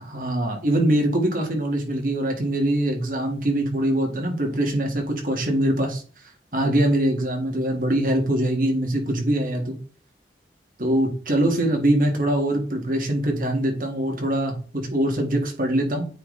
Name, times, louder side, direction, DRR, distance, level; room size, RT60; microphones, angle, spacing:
voice 1, 0.1-6.0 6.5-9.7 10.8-16.1, right 1 dB, 50° right, 2 dB, 1.8 m, -23 dB
8.9 x 4.0 x 3.2 m, 0.39 s
head